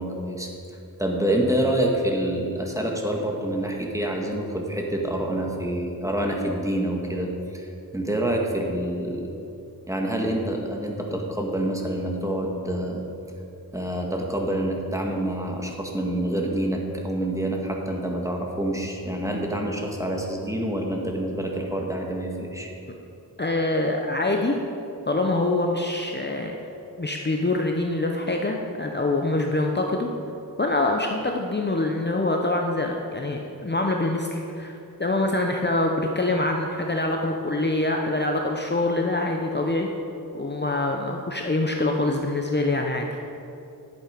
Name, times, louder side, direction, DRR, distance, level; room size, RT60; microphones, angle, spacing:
voice 1, 0.0-9.3 9.9-13.0 13.7-22.7, right 1 dB, 10° right, 0 dB, 1.7 m, -27 dB
voice 2, 23.4-24.6 25.1-26.5 27.0-30.1 30.6-39.9 40.3-43.1, left 2 dB, 30° left, 1 dB, 0.8 m, -25 dB
11.0 x 7.9 x 5.2 m, 2.7 s
cardioid pair, 45°, 38 cm